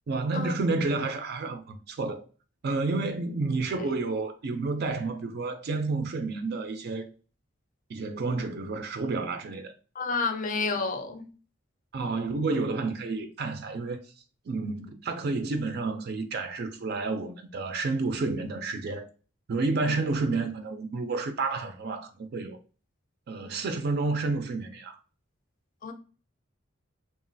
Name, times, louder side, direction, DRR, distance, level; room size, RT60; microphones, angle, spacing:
voice 1, 0.1-2.2 2.6-7.0 7.9-9.7 11.9-14.0 14.5-19.1 19.5-22.6 23.3-25.0, right 3 dB, 55° right, 0.4 m, -30 dB
voice 2, 9.9-11.3 25.8-25.9, left 4 dB, 40° left, 0.4 m, -30 dB
3.0 x 2.4 x 2.6 m
head